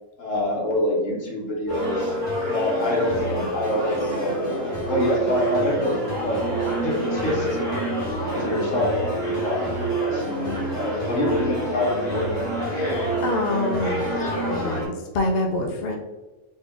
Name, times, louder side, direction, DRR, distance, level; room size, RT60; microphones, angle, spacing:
voice 1, 0.2-2.1 2.5-6.4 6.8-7.5 8.3-9.6 10.0-12.3, left 1 dB, 80° left, -2 dB, 1.4 m, -26 dB
sound 1, 1.7-14.8, right 1 dB, 40° left, 1.7 m, -27 dB
voice 2, 10.2-10.7 13.2-14.1 14.5-16.0, left 2 dB, 60° left, 2 dB, 0.7 m, -26 dB
4.0 x 2.4 x 3.6 m, 1.1 s
omnidirectional pair, 1.3 m